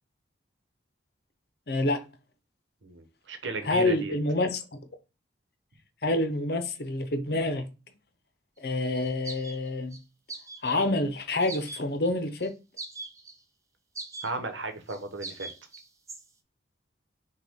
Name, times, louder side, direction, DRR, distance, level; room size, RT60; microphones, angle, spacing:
voice 1, 1.7-2.0 3.6-4.8 6.0-7.7 8.6-10.0 10.6-12.5, left 2 dB, 55° left, 0.8 m, -27 dB
voice 2, 2.8-4.2 14.2-15.5, right 2 dB, 85° right, 1.0 m, -35 dB
sound 1, 9.0-10.0 10.3-10.9 11.4-12.1 12.4-12.5 12.8-13.4 14.0-14.3 14.9-16.2, right 3 dB, 15° right, 0.5 m, -41 dB
6.0 x 2.4 x 3.6 m
head